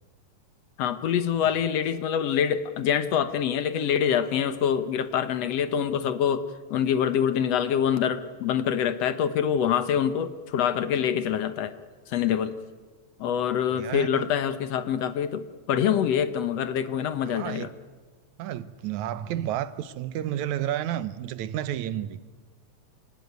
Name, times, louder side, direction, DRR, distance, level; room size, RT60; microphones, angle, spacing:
voice 1, 0.8-11.7 12.1-12.6 13.2-17.7, left 8 dB, 65° left, 2.0 m, -25 dB
voice 2, 13.8-14.3 17.2-17.7 18.4-22.2, right 11 dB, 80° right, 2.3 m, -31 dB
27.0 x 18.0 x 9.3 m
omnidirectional pair, 3.3 m